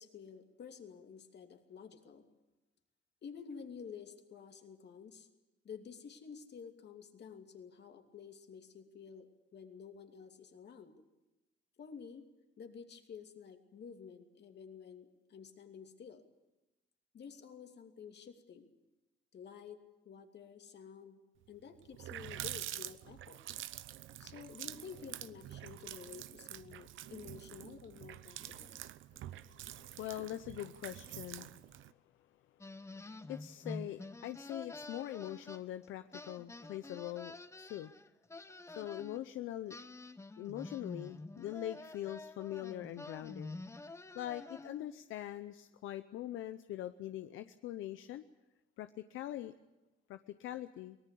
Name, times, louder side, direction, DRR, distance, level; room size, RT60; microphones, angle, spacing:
voice 1, 0.0-2.3 3.2-5.3 5.6-10.9 11.8-12.3 12.6-16.2 17.1-18.7 19.3-19.8 20.0-21.2 21.5-23.4 24.2-28.8, left 6 dB, 60° left, 5 dB, 2.8 m, -51 dB
Water tap faucet, 21.5-21.6 21.8-31.9, right 13 dB, 80° right, 0.8 m, -47 dB
voice 2, 29.1-31.5 32.9-33.0 33.3-37.9 38.8-39.8 40.4-43.5 44.1-48.2 48.8-49.5 50.1-51.0, left 13 dB, 90° left, 10 dB, 0.7 m, -43 dB
sound 1, 32.6-35.9 36.1-39.2 39.7-45.0, left 2 dB, 15° left, 0.9 m, -48 dB
23.5 x 18.5 x 8.5 m, 0.98 s
cardioid pair, 90°, 20 cm